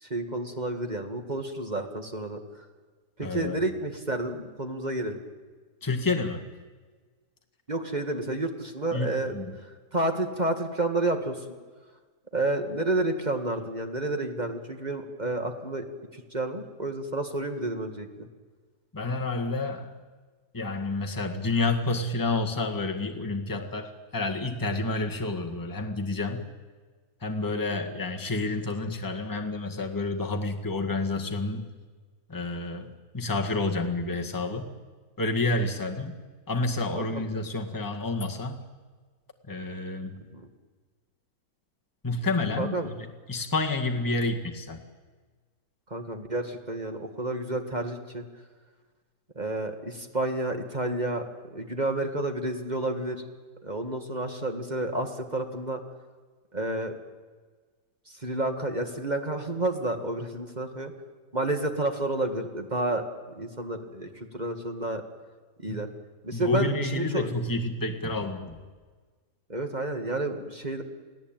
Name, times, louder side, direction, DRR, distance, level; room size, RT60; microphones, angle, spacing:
voice 1, 0.0-2.7 3.2-5.2 7.7-9.3 9.6-11.5 12.3-15.8 16.1-18.3 27.5-27.8 36.9-37.2 40.3-40.4 42.6-42.9 45.9-48.2 49.4-51.3 51.5-53.2 53.6-55.8 56.5-57.0 58.2-60.9 61.3-63.0 63.4-65.0 65.6-65.9 66.2-67.3 69.5-70.8, right 2 dB, 25° right, 5 dB, 2.0 m, -30 dB
voice 2, 3.2-3.6 5.8-6.4 8.9-9.6 18.9-20.0 20.5-26.5 27.2-31.7 32.3-32.9 33.1-34.7 35.2-36.2 36.5-38.6 39.5-40.2 42.0-43.0 43.3-44.8 65.7-65.8 66.3-68.6, left 2 dB, 10° left, 2 dB, 1.8 m, -29 dB
29.5 x 17.5 x 9.1 m, 1.4 s
omnidirectional pair, 1.7 m